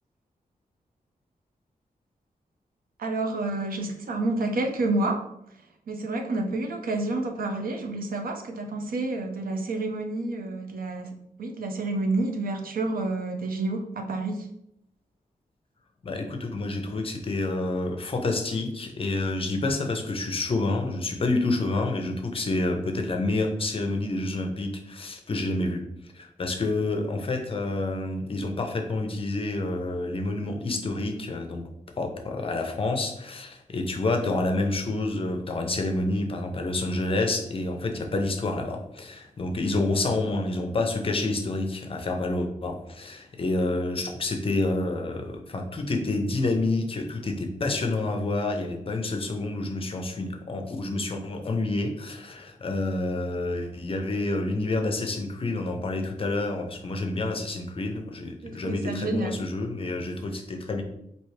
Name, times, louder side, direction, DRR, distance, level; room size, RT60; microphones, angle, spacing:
voice 1, 3.0-5.2 5.9-11.1 11.4-14.5 58.4-59.4, right 2 dB, 75° right, 4 dB, 0.6 m, -29 dB
voice 2, 16.0-25.8 26.1-31.6 32.0-60.8, left 2 dB, 40° left, 4 dB, 0.6 m, -28 dB
4.5 x 2.8 x 3.1 m, 0.78 s
wide cardioid pair, 155°, 15 cm